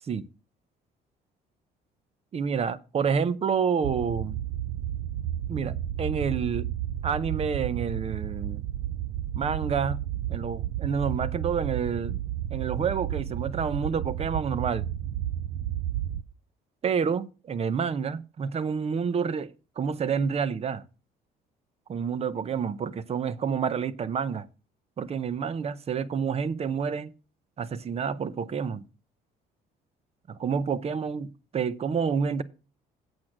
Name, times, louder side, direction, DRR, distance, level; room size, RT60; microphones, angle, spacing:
voice 1, 2.3-4.4 5.5-6.7 7.0-8.6 9.3-10.0 10.3-12.2 12.5-14.9 16.8-20.8 21.9-24.5 25.0-27.1 27.6-28.8 30.3-32.4, right 6 dB, 35° right, 0.8 m, -28 dB
sound 1, 3.8-16.2, right 11 dB, 75° right, 0.6 m, -32 dB
8.4 x 6.3 x 6.0 m
cardioid pair, 110°, 17 cm